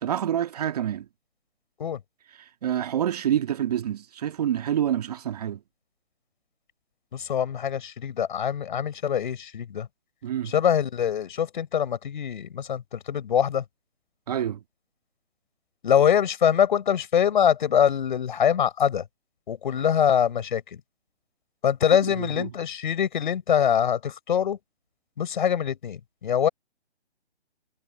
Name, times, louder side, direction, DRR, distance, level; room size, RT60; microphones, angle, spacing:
voice 1, 0.0-1.1 2.4-5.6 10.2-10.5 14.3-14.6 22.2-22.5, right 10 dB, 35° right, 1.6 m, -27 dB
voice 2, 7.1-9.9 10.4-13.6 15.8-19.0 19.5-20.8 21.6-24.6 25.2-26.5, left 8 dB, 45° left, 6.7 m, -24 dB
figure-of-eight pair, 150°, 34 cm